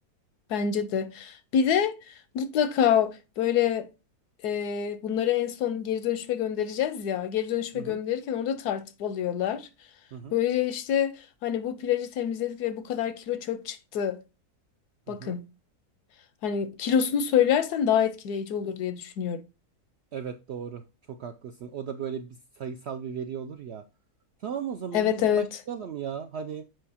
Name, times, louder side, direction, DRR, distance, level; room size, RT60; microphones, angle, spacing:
voice 1, 0.5-3.9 4.4-9.7 10.3-11.1 11.4-14.2 15.1-15.4 16.4-19.4 24.9-25.4, left 9 dB, 85° left, 1.3 m, -26 dB
voice 2, 15.1-15.4 20.1-20.8 21.1-23.8 24.4-26.7, right 7 dB, 75° right, 0.6 m, -36 dB
7.7 x 4.8 x 2.8 m
omnidirectional pair, 1.7 m